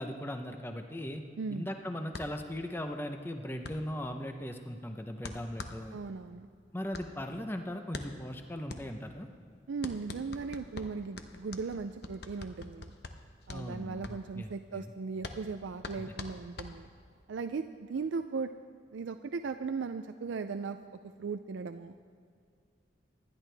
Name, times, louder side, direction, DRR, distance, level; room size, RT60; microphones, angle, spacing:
voice 1, 0.0-1.2 1.5-6.0 6.7-9.3 13.5-14.9 16.0-16.1, equal, 10° left, 5 dB, 0.6 m, -38 dB
voice 2, 1.4-1.7 5.9-6.5 9.7-12.9 13.5-16.9 17.3-18.5 18.9-20.8 21.2-21.9, right 4 dB, 80° right, 8 dB, 0.4 m, -37 dB
sound 1, 2.1-17.2, left 3 dB, 55° left, 0.9 m, -46 dB
26.5 x 11.0 x 3.4 m, 2.2 s
head